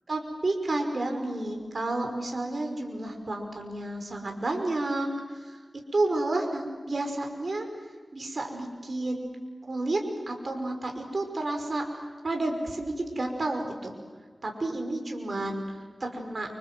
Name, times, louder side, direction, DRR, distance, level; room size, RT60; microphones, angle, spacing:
voice 1, 0.1-5.6 5.9-7.7 8.1-9.4 9.7-14.0 14.4-16.6, right 2 dB, 65° right, 3 dB, 5.5 m, -31 dB
29.0 x 26.0 x 7.8 m, 1.4 s
cardioid pair, 45°, 0 cm